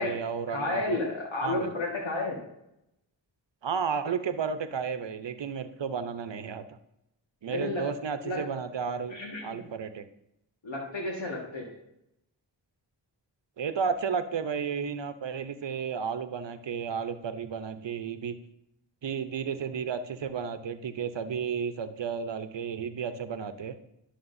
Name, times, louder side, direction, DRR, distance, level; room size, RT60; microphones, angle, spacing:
voice 1, 0.0-1.0 1.4-1.7 3.6-6.8 7.4-9.1 9.4-10.0 13.6-18.4 19.0-23.8, right 6 dB, 70° right, 10 dB, 0.8 m, -33 dB
voice 2, 0.5-2.4 7.5-7.8 8.2-8.4 9.1-9.6 10.6-11.7, left 2 dB, 80° left, -2 dB, 1.8 m, -31 dB
11.0 x 6.5 x 2.6 m, 0.82 s
cardioid pair, 50°, 45 cm